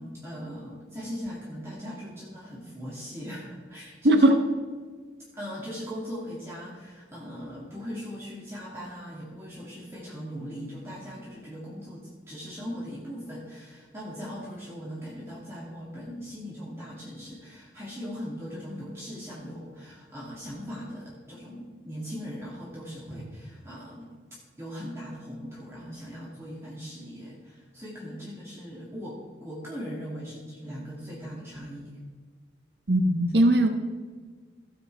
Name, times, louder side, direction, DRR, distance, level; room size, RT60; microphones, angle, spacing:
voice 1, 0.0-4.2 5.3-24.2 24.6-32.0, equal, 15° right, -7 dB, 2.4 m, -39 dB
voice 2, 4.0-4.4 32.9-33.7, right 1 dB, 70° right, 6 dB, 1.0 m, -19 dB
17.0 x 7.7 x 3.4 m, 1.5 s
head